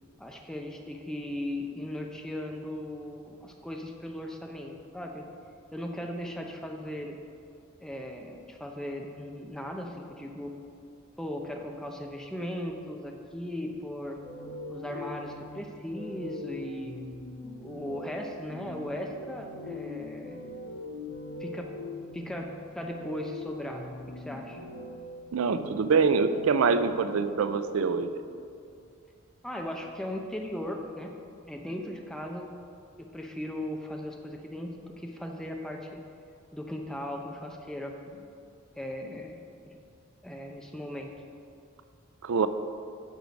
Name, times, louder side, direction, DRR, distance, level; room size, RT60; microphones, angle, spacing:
voice 1, 0.2-5.3 5.7-7.2 7.8-10.5 11.2-14.2 14.7-16.9 17.6-20.5 21.4-21.7 22.1-22.5 22.7-24.6 29.4-31.1 31.5-32.5 33.0-36.0 36.5-38.3 38.8-39.4 39.7-39.8 40.2-41.1, left 1 dB, 5° left, 2 dB, 0.6 m, -37 dB
sound 1, 14.2-27.9, left 2 dB, 55° left, 1.7 m, -41 dB
voice 2, 25.3-28.1 42.2-42.5, right 5 dB, 80° right, 10 dB, 0.4 m, -25 dB
8.3 x 6.1 x 5.1 m, 2.5 s
head